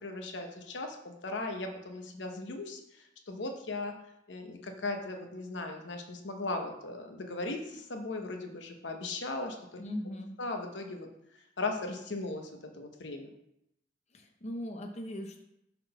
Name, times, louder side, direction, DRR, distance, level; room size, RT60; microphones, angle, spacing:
voice 1, 0.0-3.9 4.3-9.8 10.4-11.1 11.6-13.3, left 2 dB, 85° left, 4 dB, 0.9 m, -38 dB
voice 2, 9.8-10.3 14.1-15.4, left 1 dB, 40° left, 4 dB, 0.6 m, -39 dB
5.7 x 3.7 x 5.7 m, 0.82 s
head